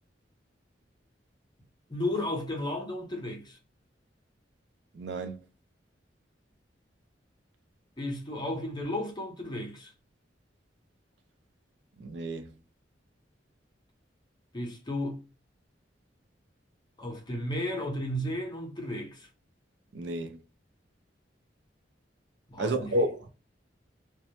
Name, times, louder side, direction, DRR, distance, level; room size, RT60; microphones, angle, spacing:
voice 1, 1.9-3.6 8.0-9.9 14.5-15.2 17.0-19.3 22.5-23.0, left 1 dB, 25° left, 0.6 m, -33 dB
voice 2, 4.9-5.4 12.0-12.5 19.9-20.4 22.6-23.3, right 1 dB, 70° right, 0.4 m, -31 dB
2.1 x 2.0 x 2.8 m
head